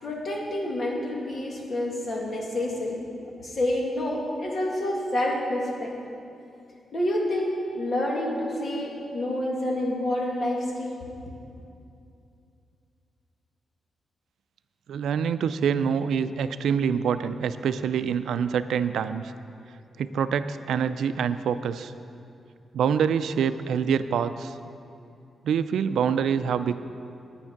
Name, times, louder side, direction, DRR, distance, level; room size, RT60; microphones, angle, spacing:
voice 1, 0.0-3.0 3.4-5.9 6.9-10.9, left 1 dB, 40° left, -2 dB, 2.1 m, -28 dB
voice 2, 14.9-19.3 20.0-21.9 22.7-24.5 25.4-26.8, right 7 dB, 90° right, 12 dB, 0.4 m, -26 dB
9.9 x 9.8 x 5.9 m, 2.6 s
wide cardioid pair, 130°, 0 cm